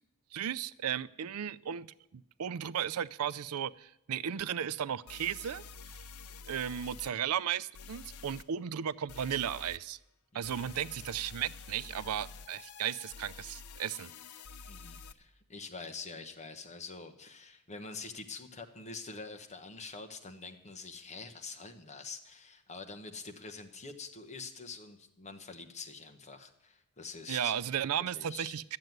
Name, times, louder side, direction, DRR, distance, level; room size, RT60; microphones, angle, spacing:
voice 1, 0.3-5.6 6.5-10.0 10.3-14.1 27.3-28.8, right 9 dB, 75° right, 18 dB, 0.4 m, -35 dB
sound 1, 4.4-4.5 5.1-7.1 7.7-8.4 9.1-9.8 10.4-15.1, left 4 dB, 75° left, 0.6 m, -49 dB
voice 2, 6.5-6.8 10.3-10.6 14.7-27.5 28.1-28.6, left 4 dB, 30° left, 6 dB, 1.1 m, -46 dB
12.0 x 7.7 x 9.3 m, 0.85 s
head